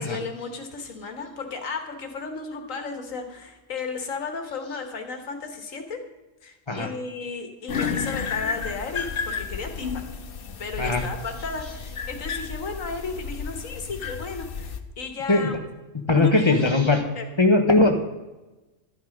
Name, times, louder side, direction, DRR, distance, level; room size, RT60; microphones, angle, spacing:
voice 1, 0.0-6.0 6.4-10.0 10.6-15.5 16.1-16.6 17.2-17.3, left 4 dB, 90° left, 5 dB, 1.8 m, -34 dB
sound 1, 7.7-14.8, left 6 dB, 50° left, 0.9 m, -32 dB
voice 2, 16.1-17.0 17.4-17.9, left 2 dB, 25° left, 5 dB, 1.2 m, -19 dB
13.0 x 9.3 x 5.2 m, 1.1 s
omnidirectional pair, 1.3 m